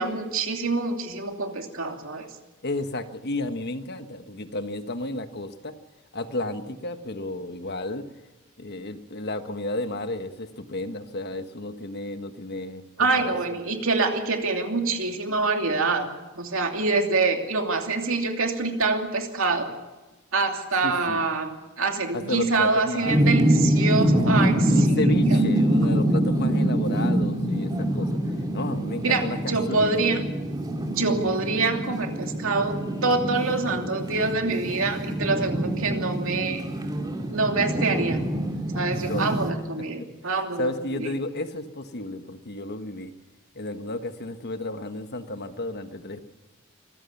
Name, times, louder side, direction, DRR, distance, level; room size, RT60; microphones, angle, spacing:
voice 1, 0.0-2.3 13.0-16.1 16.4-19.7 20.3-25.0 25.3-25.4 29.0-29.2 29.5-30.2 30.9-36.6 37.3-38.2 38.7-40.7 41.0-41.1, right 3 dB, 70° right, 3 dB, 2.8 m, -25 dB
voice 2, 2.6-5.7 6.1-8.0 8.6-13.6 20.8-21.2 22.1-23.2 24.7-30.1 39.1-39.3 39.8-39.9 40.2-43.1 43.5-46.2, left 2 dB, 50° left, 9 dB, 1.3 m, -32 dB
sound 1, 23.0-39.5, right 1 dB, 20° right, 2.3 m, -25 dB
25.0 x 15.0 x 7.2 m, 1.1 s
head